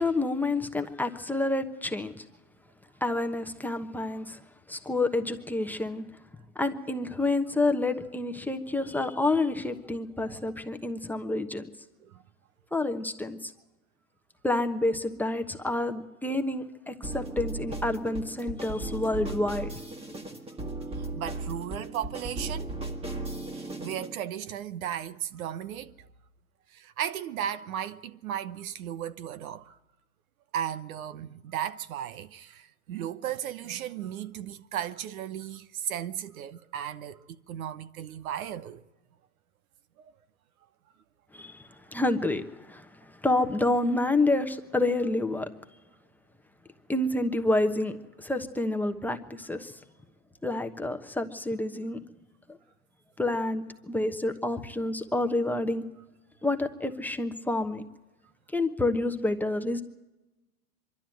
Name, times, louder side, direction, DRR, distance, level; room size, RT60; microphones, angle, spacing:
voice 1, 0.0-2.2 3.0-4.4 4.7-6.2 6.5-11.6 12.7-13.5 14.4-19.7 41.3-45.5 46.9-49.8 50.4-52.0 53.2-55.9 56.4-57.8 58.5-59.8, left 2 dB, 5° left, 1.1 m, -28 dB
sound 1, 17.0-24.1, right 2 dB, 15° right, 1.7 m, -36 dB
voice 2, 21.1-22.7 23.5-26.1 26.7-29.8 30.5-38.8 40.0-40.1, right 10 dB, 70° right, 1.0 m, -35 dB
24.0 x 12.0 x 9.1 m
hypercardioid pair, 115°, 43 cm